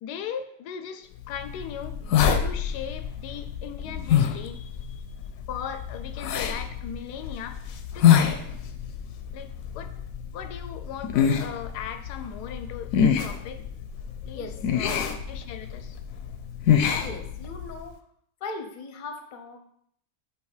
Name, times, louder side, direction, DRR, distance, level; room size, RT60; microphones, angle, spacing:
voice 1, 0.0-2.1 2.4-5.0 5.5-7.6 7.9-8.4 9.3-9.9 10.3-13.6 14.2-16.0, left 8 dB, 90° left, 10 dB, 1.2 m, -38 dB
sound 1, 1.2-17.8, left 8 dB, 70° left, 0.9 m, -26 dB
voice 2, 14.3-15.1 17.0-18.0 18.4-19.6, left 3 dB, 40° left, 5 dB, 0.7 m, -38 dB
7.8 x 2.8 x 4.9 m, 0.68 s
omnidirectional pair, 1.7 m